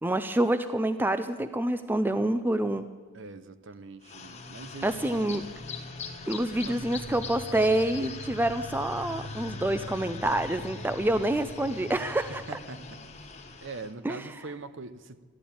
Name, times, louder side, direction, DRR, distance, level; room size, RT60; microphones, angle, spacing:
voice 1, 0.0-2.9 4.8-5.4 6.3-12.4 14.0-14.2, right 1 dB, 10° right, 11 dB, 0.4 m, -27 dB
voice 2, 3.1-5.4 6.4-6.9 12.3-13.3 13.6-15.2, right 3 dB, 60° right, 12 dB, 0.8 m, -43 dB
sound 1, 4.0-13.9, left 3 dB, 30° left, 1.4 m, -40 dB
13.5 x 11.0 x 8.6 m, 1.5 s
head